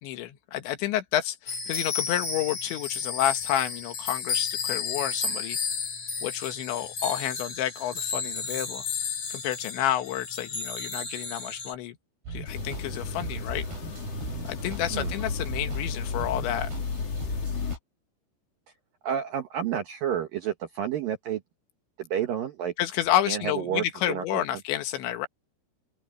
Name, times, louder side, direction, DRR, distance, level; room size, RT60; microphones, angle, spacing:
voice 1, 0.0-5.6 6.2-8.9 9.3-12.0 12.3-13.7 14.4-16.7 22.8-25.3, left 12 dB, 70° left, 3.3 m, -30 dB
sound 1, 1.5-11.7, left 5 dB, 30° left, 4.7 m, -32 dB
sound 2, 12.3-17.8, right 4 dB, 50° right, 8.5 m, -38 dB
sound 3, 12.5-17.8, left 5 dB, 50° left, 2.0 m, -34 dB
voice 2, 19.0-21.4 22.0-22.7 23.3-24.6, right 9 dB, 80° right, 2.0 m, -30 dB
open air
omnidirectional pair, 6.0 m